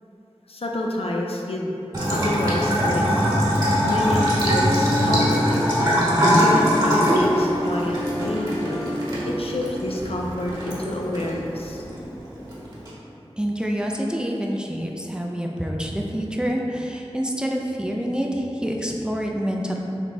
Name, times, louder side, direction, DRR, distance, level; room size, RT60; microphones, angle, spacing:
voice 1, 0.5-1.8 2.1-3.3 3.8-5.8 6.3-8.8 9.2-11.8, left 1 dB, 70° left, -1 dB, 0.5 m, -28 dB
Bathtub (filling or washing) / Trickle dribble, 1.9-12.9, equal, 40° right, 1.1 m, -22 dB
Guitar, 4.5-9.1, equal, 65° right, 0.9 m, -31 dB
sound 1, 5.0-10.9, left 1 dB, 25° left, 0.7 m, -31 dB
voice 2, 13.4-19.8, equal, 10° right, -1 dB, 0.4 m, -27 dB
3.4 x 3.0 x 4.0 m, 2.9 s
wide cardioid pair, 50°, 10 cm